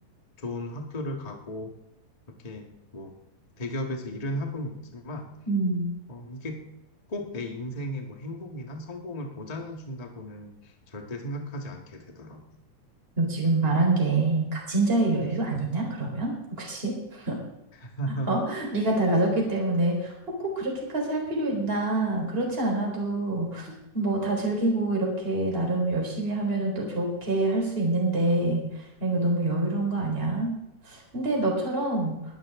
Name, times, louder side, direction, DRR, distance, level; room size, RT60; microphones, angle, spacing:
voice 1, 0.4-1.7 2.4-3.1 3.6-5.3 6.1-6.6 7.1-12.4 17.8-18.4, equal, 25° left, 2 dB, 0.9 m, -35 dB
voice 2, 5.5-5.9 13.2-17.4 18.3-28.6 29.0-30.5 30.8-32.1, right 2 dB, 15° right, -1 dB, 4.2 m, -26 dB
20.5 x 12.0 x 3.7 m, 0.88 s
omnidirectional pair, 3.7 m